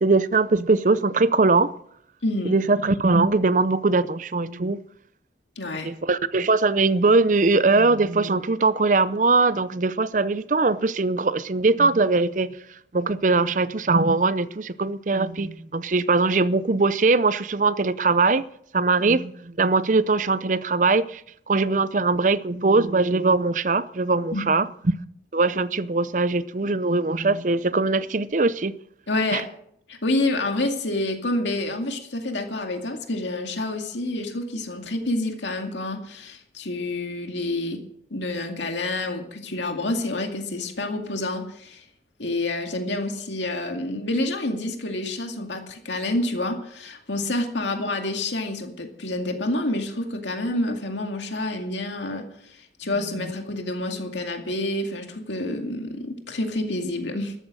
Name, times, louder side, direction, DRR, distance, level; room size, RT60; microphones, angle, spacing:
voice 1, 0.0-1.7 2.4-4.8 5.8-12.5 12.9-18.4 18.7-21.2 21.5-24.7 25.3-28.8 29.3-29.4 53.2-53.3, right 3 dB, 45° right, 0.6 m, -21 dB
voice 2, 2.2-2.6 5.6-5.9 24.3-24.5 29.1-29.4 29.9-37.8 38.1-41.8 42.2-57.3, left 2 dB, 85° left, 2.2 m, -28 dB
13.5 x 13.0 x 6.3 m
head